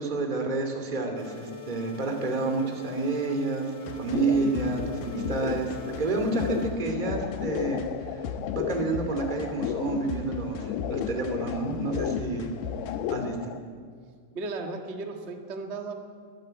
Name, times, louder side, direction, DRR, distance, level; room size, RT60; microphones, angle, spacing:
voice 1, 0.0-7.8 8.5-12.5 13.1-13.6, right 3 dB, 15° right, 4 dB, 1.9 m, -29 dB
sound 1, 1.2-6.7, equal, 35° left, 2.4 m, -44 dB
sound 2, 3.9-13.1, left 6 dB, 65° left, 2.6 m, -38 dB
sound 3, 4.1-13.6, left 10 dB, 80° left, 2.7 m, -34 dB
voice 2, 14.3-15.9, right 3 dB, 90° right, 3 dB, 0.6 m, -35 dB
21.5 x 14.0 x 9.1 m, 2.1 s
omnidirectional pair, 4.7 m